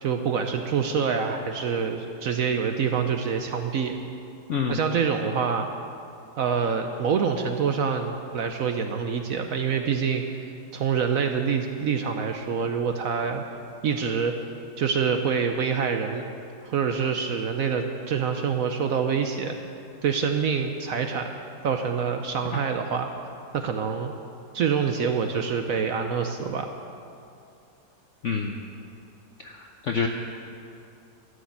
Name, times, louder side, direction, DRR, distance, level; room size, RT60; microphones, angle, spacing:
voice 1, 0.0-4.0 4.7-5.7 6.4-10.2 10.7-13.4 13.8-14.3 14.8-16.2 16.6-19.6 20.0-21.3 21.6-23.1 23.5-24.1 24.5-26.7, right 6 dB, 65° right, 5 dB, 0.9 m, -26 dB
voice 2, 28.2-28.6 29.4-30.1, left 6 dB, 65° left, 3 dB, 0.7 m, -27 dB
12.5 x 6.5 x 9.3 m, 2.5 s
omnidirectional pair, 1.9 m